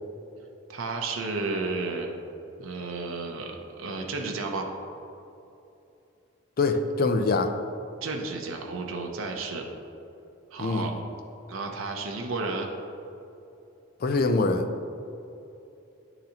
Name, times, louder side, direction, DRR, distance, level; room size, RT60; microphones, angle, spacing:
voice 1, 0.7-2.1 2.6-3.5 3.8-4.7 8.0-9.6 10.5-10.9 11.5-12.7, right 3 dB, 80° right, 1 dB, 0.6 m, -32 dB
voice 2, 6.6-7.5 10.6-10.9 14.0-14.7, left 3 dB, 45° left, 7 dB, 0.4 m, -24 dB
9.9 x 3.9 x 2.8 m, 2.8 s
head